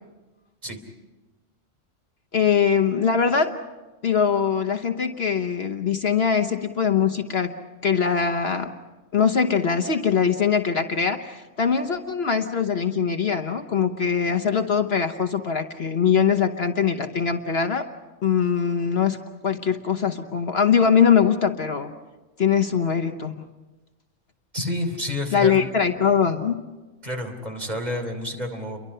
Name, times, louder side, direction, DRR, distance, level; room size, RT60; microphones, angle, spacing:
voice 1, 2.3-3.5 4.0-7.5 7.8-8.7 9.1-17.9 18.2-21.9 22.4-23.3 25.3-26.6, left 7 dB, 55° left, 6 dB, 1.2 m, -22 dB
voice 2, 24.5-25.7 27.0-28.8, left 1 dB, 30° right, 4 dB, 3.1 m, -29 dB
29.5 x 23.5 x 5.6 m, 1.2 s
omnidirectional pair, 1.4 m